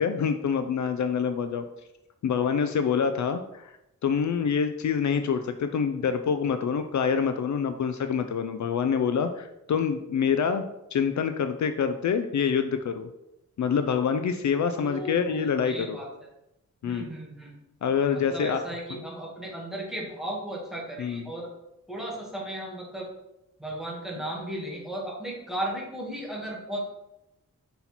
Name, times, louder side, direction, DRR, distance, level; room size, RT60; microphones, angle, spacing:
voice 1, 0.0-1.6 2.2-3.7 4.0-10.6 10.9-13.1 13.6-16.0 16.8-17.1 17.8-18.6 21.0-21.3, left 6 dB, 65° left, 8 dB, 0.5 m, -26 dB
voice 2, 14.7-16.3 16.8-17.6 18.1-21.5 21.9-23.1 23.6-26.8, right 1 dB, ahead, -4 dB, 1.8 m, -35 dB
5.6 x 4.1 x 4.3 m, 0.88 s
wide cardioid pair, 120°, 31 cm